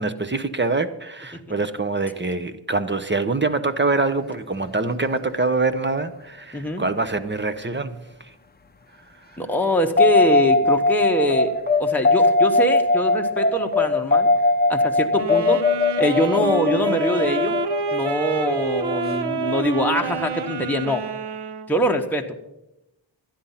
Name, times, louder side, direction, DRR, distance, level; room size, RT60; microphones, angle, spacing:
voice 1, 0.0-8.0, right 3 dB, 25° right, 0.7 m, -24 dB
voice 2, 6.5-6.8 9.4-11.5 11.8-14.3 14.7-15.6 16.0-17.6 17.9-21.0 21.7-22.3, left 1 dB, 5° left, 1.0 m, -23 dB
sound 1, 10.0-20.1, left 3 dB, 20° left, 0.6 m, -20 dB
sound 2, 15.1-21.7, right 5 dB, 60° right, 0.8 m, -27 dB
12.5 x 10.0 x 5.6 m
wide cardioid pair, 85°, 46 cm